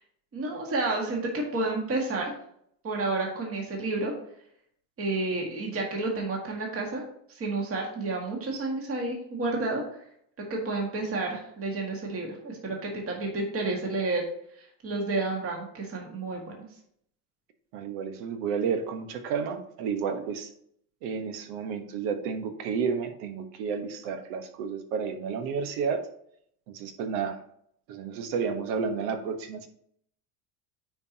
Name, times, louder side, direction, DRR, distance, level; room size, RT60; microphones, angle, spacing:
voice 1, 0.3-2.3 2.8-4.1 5.0-7.1 7.4-9.8 10.4-14.2 14.8-16.5, right 2 dB, 25° right, 0 dB, 1.9 m, -30 dB
voice 2, 17.7-20.5 21.0-26.1 26.7-27.4 27.9-29.7, right 6 dB, 70° right, 7 dB, 1.3 m, -31 dB
9.4 x 4.7 x 2.9 m, 0.68 s
cardioid pair, 150°, 49 cm